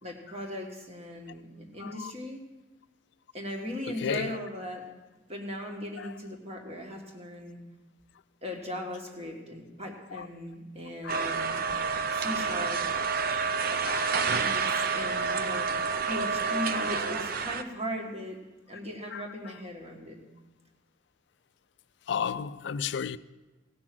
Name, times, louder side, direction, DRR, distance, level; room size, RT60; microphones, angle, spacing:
voice 1, 0.0-2.4 3.3-4.9 5.3-7.6 8.4-11.7 12.1-13.0 14.3-18.4 18.7-20.2, left 1 dB, 35° right, 1.8 m, -38 dB
voice 2, 1.8-2.1 4.0-4.4 6.0-6.1 10.1-10.3 11.0-11.2 13.8-14.3 16.7-16.9 19.1-19.6 22.1-23.2, left 7 dB, 65° left, 0.4 m, -34 dB
sound 1, 11.1-17.6, right 5 dB, 50° right, 0.6 m, -29 dB
17.0 x 6.1 x 6.0 m
head